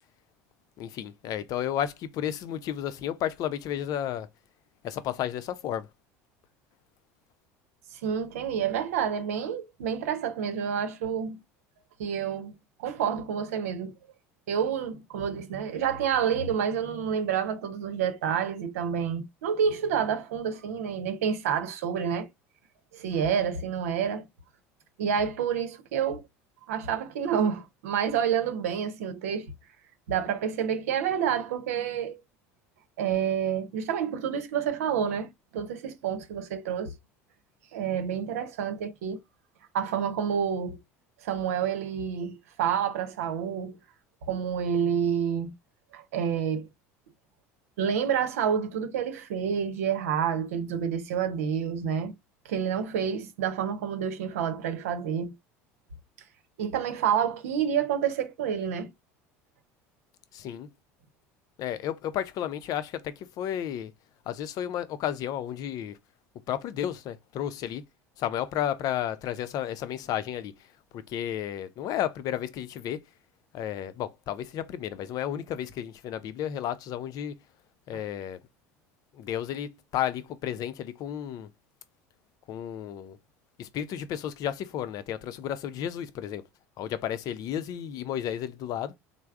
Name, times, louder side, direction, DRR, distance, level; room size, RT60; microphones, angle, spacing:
voice 1, 0.8-4.3 4.8-5.9 60.3-60.7 61.6-63.9 64.3-66.0 66.5-67.8 68.2-70.5 70.9-73.0 73.5-77.4 77.9-78.4 79.1-81.5 82.5-83.2 83.6-86.4 86.8-88.9, left 10 dB, 55° left, 0.5 m, -32 dB
voice 2, 7.9-11.4 12.0-12.5 12.8-13.9 14.5-22.3 22.9-24.3 25.0-26.2 26.7-29.5 30.1-32.2 33.0-36.9 37.7-39.2 39.7-40.8 41.2-43.8 44.3-45.5 45.9-46.7 47.8-52.1 52.4-55.3 56.6-58.9 77.9-78.0, right 8 dB, 80° right, 0.7 m, -28 dB
3.3 x 2.0 x 3.5 m
hypercardioid pair, 80°, 8 cm